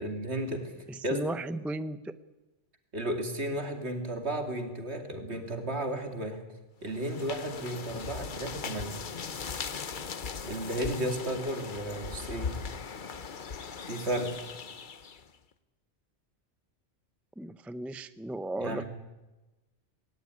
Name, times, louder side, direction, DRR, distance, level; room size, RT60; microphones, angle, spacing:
voice 1, 0.0-0.7 1.0-1.2 2.9-6.4 6.8-9.0 10.4-12.6 13.9-14.3 18.6-18.8, right 1 dB, 65° right, 5 dB, 2.9 m, -33 dB
voice 2, 0.9-2.2 17.4-18.8, right 1 dB, ahead, 12 dB, 0.4 m, -35 dB
sound 1, 6.9-15.3, left 5 dB, 45° left, 1.0 m, -39 dB
18.5 x 18.0 x 9.7 m, 1.1 s
omnidirectional pair, 1.2 m